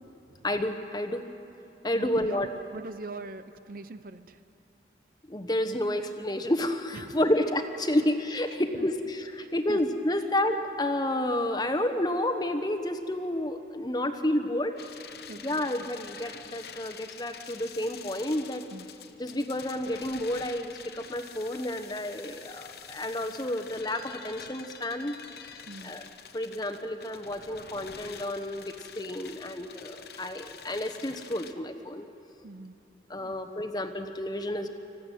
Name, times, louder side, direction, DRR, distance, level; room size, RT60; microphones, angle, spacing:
voice 1, 0.4-1.2 1.8-2.5 5.3-14.8 15.4-18.6 19.2-25.2 25.8-26.0 26.3-32.0 33.1-34.7, left 1 dB, 20° left, 7 dB, 1.1 m, -30 dB
voice 2, 1.9-4.4 6.9-7.2 8.0-8.1 8.5-8.9 9.4-9.8 15.3-15.7 18.7-18.9 25.7-26.0 32.4-32.8 33.2-33.3, right 3 dB, 50° right, 11 dB, 0.7 m, -43 dB
sound 1, 14.8-31.5, left 7 dB, 55° left, 1.0 m, -47 dB
26.5 x 15.0 x 9.2 m, 2.8 s
head